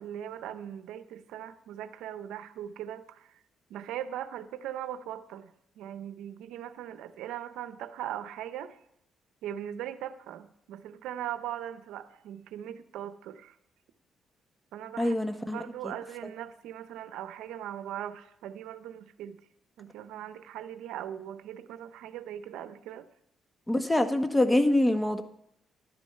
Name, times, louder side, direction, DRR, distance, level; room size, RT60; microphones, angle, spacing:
voice 1, 0.0-3.4 3.7-5.5 5.8-8.8 9.4-13.5 14.7-15.1 15.5-19.4 19.8-23.1, right 11 dB, 90° right, 12 dB, 0.6 m, -40 dB
voice 2, 15.0-15.9 23.7-25.2, left 1 dB, 10° left, 9 dB, 1.2 m, -25 dB
11.5 x 9.7 x 5.6 m, 0.77 s
cardioid pair, 90°, 0 cm